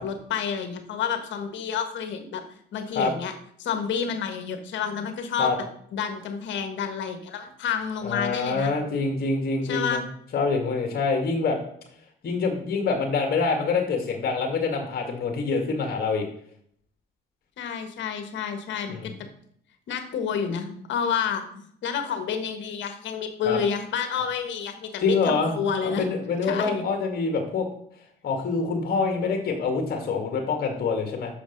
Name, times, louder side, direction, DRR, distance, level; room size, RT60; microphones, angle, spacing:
voice 1, 0.0-2.4 2.7-3.3 3.6-5.5 5.9-8.7 9.6-10.0 17.6-19.1 19.9-26.1 26.4-26.9, left 7 dB, 65° left, 7 dB, 1.5 m, -29 dB
voice 2, 8.0-10.0 10.3-11.6 12.2-16.2 18.9-19.1 23.5-23.6 25.0-27.7 28.2-31.3, left 4 dB, 50° left, 3 dB, 2.0 m, -26 dB
7.0 x 5.1 x 5.3 m, 0.65 s
supercardioid pair, 75°, 20 cm